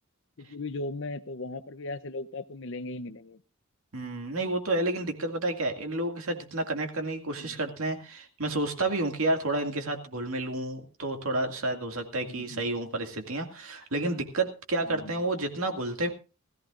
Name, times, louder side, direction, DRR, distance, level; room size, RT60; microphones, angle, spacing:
voice 1, 0.4-3.4 7.4-7.5 12.3-12.7 14.9-15.1, left 2 dB, 60° left, 12 dB, 0.7 m, -37 dB
voice 2, 3.9-16.1, right 2 dB, 75° right, 4 dB, 2.2 m, -30 dB
20.5 x 14.5 x 2.5 m, 0.32 s
head